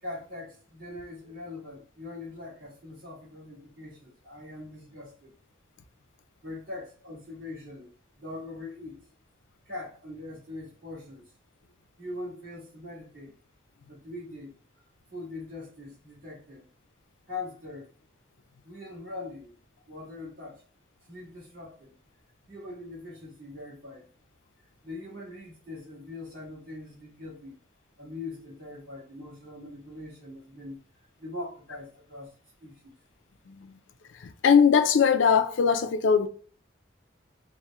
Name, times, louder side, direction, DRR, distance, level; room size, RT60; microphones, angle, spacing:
voice 1, 0.0-5.4 6.4-7.9 8.2-9.1 9.6-11.3 12.0-13.4 13.9-14.6 15.1-16.7 17.3-17.9 18.6-19.6 19.9-20.6 21.1-22.0 22.5-24.1 24.6-27.6 28.0-30.8 31.2-32.3 32.6-32.9, left 2 dB, 50° right, 1.7 m, -42 dB
voice 2, 34.4-36.3, left 6 dB, 75° left, 0.4 m, -20 dB
4.2 x 2.1 x 3.4 m
head